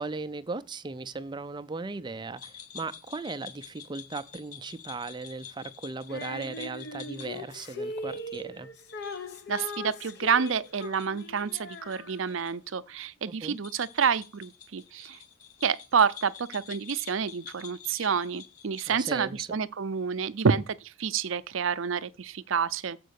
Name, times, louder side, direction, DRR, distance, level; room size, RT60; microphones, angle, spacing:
voice 1, 0.0-8.7 13.3-13.6 18.9-19.6, right 3 dB, 20° right, 0.4 m, -37 dB
sound 1, 2.4-12.5 12.8-12.9 13.5-19.3, left 9 dB, 40° left, 2.9 m, -48 dB
Female singing, 6.1-12.6, left 1 dB, 55° left, 1.0 m, -40 dB
voice 2, 9.5-15.2 15.6-23.0, right 6 dB, 70° right, 0.6 m, -28 dB
7.7 x 5.1 x 6.4 m
head